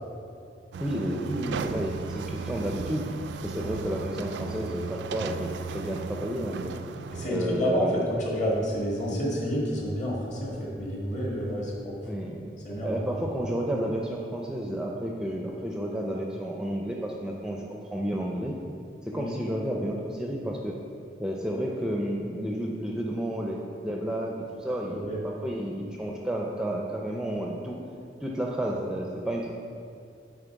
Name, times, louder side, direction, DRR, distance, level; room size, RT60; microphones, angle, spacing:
sound 1, 0.7-7.3, right 5 dB, 75° right, 0.3 m, -36 dB
voice 1, 0.8-3.1 3.4-6.8 7.3-8.0 9.1-9.2 11.6-11.7 12.0-18.6 19.1-20.8 21.2-27.8 28.2-29.5, equal, 5° right, -1 dB, 0.4 m, -31 dB
voice 2, 7.1-12.0 12.6-13.1 19.1-19.3 24.9-25.2, equal, 45° left, -4 dB, 1.6 m, -29 dB
8.9 x 3.8 x 4.6 m, 2.4 s
head